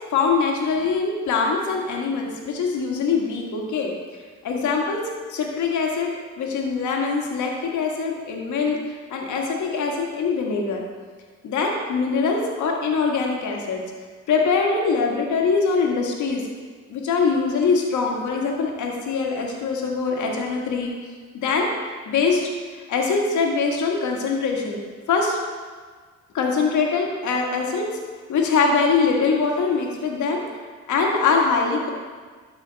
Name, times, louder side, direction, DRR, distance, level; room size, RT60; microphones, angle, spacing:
voice 1, 0.1-5.0 5.3-6.1 6.4-10.8 11.4-13.8 14.3-16.4 16.9-20.9 21.3-24.8 25.1-25.4 26.3-27.9 28.3-30.4 30.9-31.9, left 4 dB, 75° left, 0 dB, 1.7 m, -23 dB
12.5 x 5.6 x 4.1 m, 1.5 s
cardioid pair, 90°, 30 cm